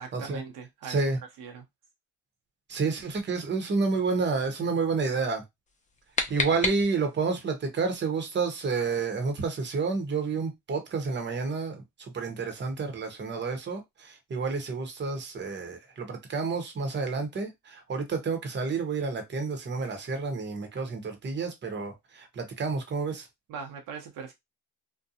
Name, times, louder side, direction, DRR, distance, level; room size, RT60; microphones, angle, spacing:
voice 1, 0.0-1.1 1.4-1.7 23.5-24.3, right 6 dB, 75° right, 0.8 m, -40 dB
voice 2, 0.9-1.2 2.7-5.4 6.3-11.8 12.1-23.2, right 4 dB, 35° right, 0.9 m, -30 dB
sound 1, 5.7-7.3, left 3 dB, 20° left, 0.7 m, -32 dB
2.5 x 2.2 x 2.7 m
cardioid pair, 85°, 33 cm